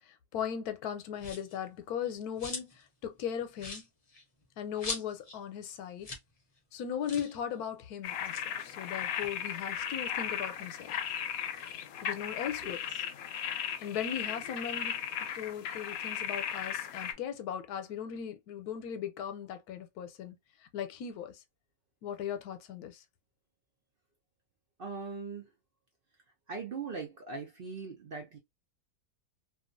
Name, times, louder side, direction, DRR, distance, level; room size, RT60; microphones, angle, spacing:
voice 1, 0.1-3.9 4.6-6.1 6.7-10.9 12.0-12.8 13.8-15.0 15.3-20.4 20.7-21.4 22.0-23.0, left 8 dB, 90° left, 1.1 m, -38 dB
sound 1, 1.2-1.6 2.0-2.9 3.2-3.3 3.6-5.4 5.7-5.8 6.0-6.3 6.6-6.7 7.0-7.4 8.1-9.9 10.3-11.7, left 3 dB, 40° left, 0.5 m, -43 dB
sound 2, 8.0-17.1, left 9 dB, 75° left, 1.0 m, -36 dB
voice 2, 12.6-13.0 24.8-25.5 26.5-28.4, right 4 dB, 55° right, 0.6 m, -40 dB
2.7 x 2.3 x 2.5 m
omnidirectional pair, 1.6 m